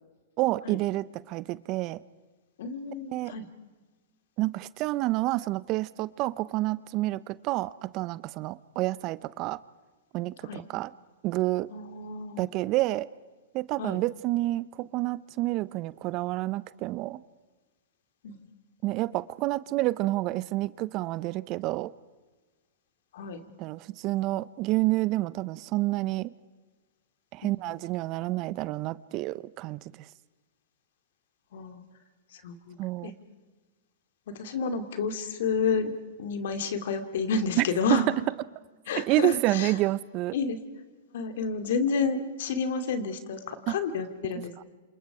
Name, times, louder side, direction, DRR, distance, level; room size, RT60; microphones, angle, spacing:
voice 1, 0.4-2.0 3.1-3.3 4.4-9.6 10.1-10.9 11.2-11.7 12.4-13.1 13.5-17.2 18.8-21.9 23.6-26.3 27.3-29.8 32.8-33.1 37.6-37.7 37.9-38.0 39.1-40.3 43.7-43.8, right 18 dB, 40° right, 19 dB, 0.7 m, -29 dB
voice 2, 2.6-3.5 10.4-10.6 11.7-12.5 13.8-14.0 18.2-18.4 23.1-23.4 27.4-27.7 31.5-31.8 32.3-33.1 34.3-35.9 36.2-38.1 38.9-39.7 40.3-40.6 41.1-44.6, left 4 dB, 65° left, 8 dB, 2.6 m, -30 dB
28.0 x 27.5 x 5.0 m, 1.3 s
hypercardioid pair, 115°, 0 cm